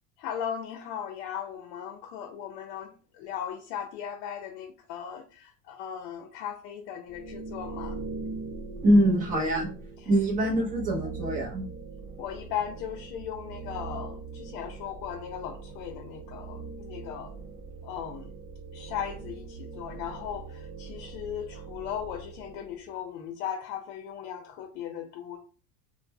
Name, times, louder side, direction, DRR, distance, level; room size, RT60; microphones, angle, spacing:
voice 1, 0.2-8.0 10.0-10.1 10.4-10.5 12.2-17.3 17.8-18.3 18.7-25.4, left 9 dB, 75° left, 0.6 m, -37 dB
sound 1, 7.1-22.8, right 4 dB, 40° right, 1.1 m, -41 dB
voice 2, 8.8-9.7 10.1-11.7, equal, 20° right, 0.4 m, -23 dB
2.1 x 2.0 x 3.2 m
cardioid pair, 150°, 48 cm